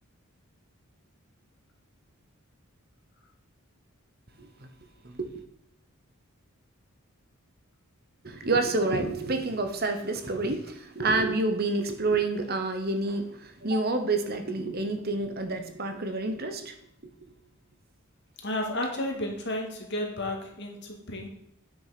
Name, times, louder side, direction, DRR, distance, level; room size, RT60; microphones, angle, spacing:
voice 1, 4.4-4.7 5.0-5.3 8.2-16.7, right 2 dB, 45° right, 7 dB, 1.0 m, -28 dB
voice 2, 18.4-21.3, left 1 dB, 50° left, 2 dB, 2.1 m, -32 dB
9.0 x 6.1 x 5.9 m, 0.80 s
head